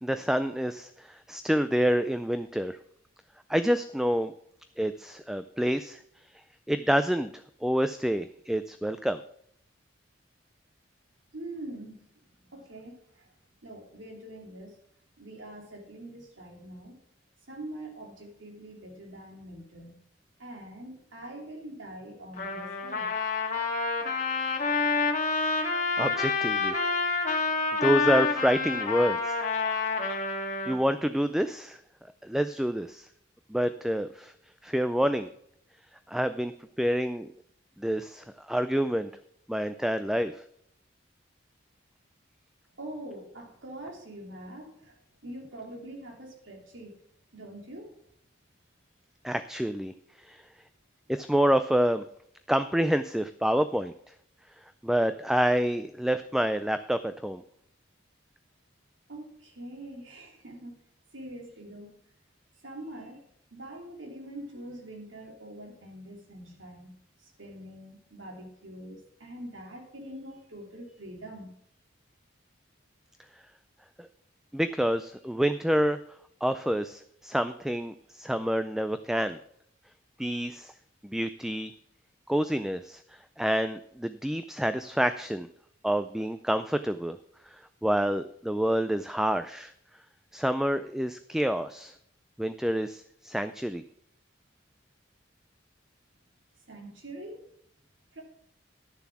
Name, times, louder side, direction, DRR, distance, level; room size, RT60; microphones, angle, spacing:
voice 1, 0.0-2.8 3.5-4.3 4.8-6.0 6.7-9.2 26.0-26.7 27.8-29.4 29.9-30.0 30.7-31.8 32.2-33.1 33.5-34.3 34.6-35.3 36.1-36.5 36.8-37.3 37.8-39.1 39.5-40.4 49.2-50.4 51.1-52.0 52.5-53.9 54.8-57.4 74.0-74.1 74.5-76.0 76.4-79.4 80.2-80.7 81.0-81.7 82.3-85.5 85.8-87.2 87.5-89.7 90.3-91.9 92.4-93.8, equal, ahead, 10 dB, 0.3 m, -28 dB
voice 2, 11.3-11.9 12.5-13.3 13.6-14.8 15.2-17.0 17.5-20.0 20.4-23.1 42.8-44.9 45.2-47.0 47.3-47.9 59.1-60.8 61.1-62.0 62.6-63.2 63.5-66.9 67.2-71.5 96.7-97.4 98.1-98.2, right 1 dB, 85° right, 1 dB, 2.9 m, -44 dB
Trumpet, 22.4-30.8, left 4 dB, 40° left, 2.0 m, -28 dB
11.5 x 7.0 x 6.0 m, 0.68 s
head